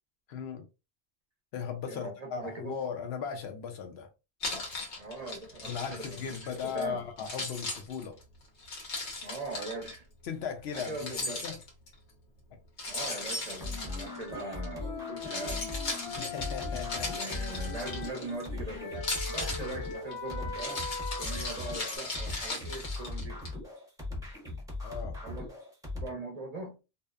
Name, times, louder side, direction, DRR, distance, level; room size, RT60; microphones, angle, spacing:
voice 1, 0.3-0.7 1.5-4.1 5.6-8.2 10.2-11.6 16.0-17.4 19.4-19.8 24.8-25.2, left 7 dB, 75° left, 0.8 m, -38 dB
voice 2, 1.9-2.7 5.0-6.2 6.7-7.0 9.2-10.1 10.7-11.4 12.9-15.7 17.0-20.8 21.2-23.4 25.2-25.5 25.9-26.7, right 2 dB, 45° right, 0.7 m, -41 dB
Keys jangling, 4.4-6.8 7.2-10.0 10.7-11.9 12.8-14.7 15.1-18.5 18.9-23.5, left 2 dB, 90° left, 1.3 m, -38 dB
sound 1, 13.6-26.1, left 2 dB, 5° right, 0.7 m, -39 dB
Wind instrument woodwind instrument, 14.0-18.2 18.8-22.0, left 4 dB, 40° left, 0.5 m, -41 dB
2.7 x 2.0 x 2.3 m
omnidirectional pair, 1.1 m